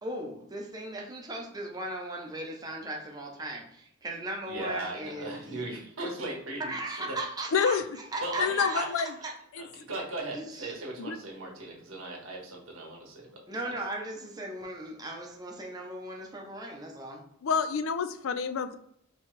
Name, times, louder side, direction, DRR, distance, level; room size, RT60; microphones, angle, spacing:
voice 1, 0.0-5.7 6.6-7.8 8.1-9.3 10.3-10.8 13.5-17.2, right 1 dB, 20° right, 1 dB, 0.7 m, -37 dB
voice 2, 4.5-6.7 7.1-7.2 8.2-8.9 9.6-13.6, right 2 dB, 80° right, -1 dB, 1.4 m, -38 dB
voice 3, 7.5-7.8 8.4-9.1 9.5-9.7 11.0-11.2 17.4-18.8, left 6 dB, 70° left, 10 dB, 0.4 m, -28 dB
4.5 x 2.9 x 3.2 m, 0.73 s
head